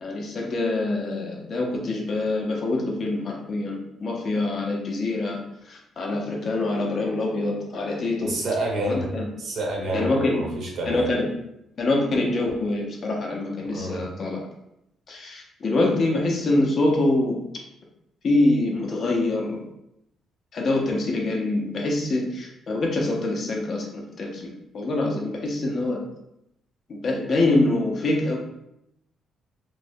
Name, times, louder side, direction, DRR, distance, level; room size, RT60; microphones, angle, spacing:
voice 1, 0.0-5.4 5.7-8.3 8.9-9.3 9.9-10.5 10.9-11.3 11.8-14.4 15.1-17.4 18.2-19.6 20.5-26.0 26.9-28.4, left 2 dB, 55° left, 0 dB, 0.6 m, -25 dB
voice 2, 8.2-9.0 9.4-11.0 13.7-14.0, right 2 dB, 65° right, -1 dB, 0.8 m, -28 dB
3.1 x 2.1 x 2.6 m, 0.82 s
cardioid pair, 90°, 0 cm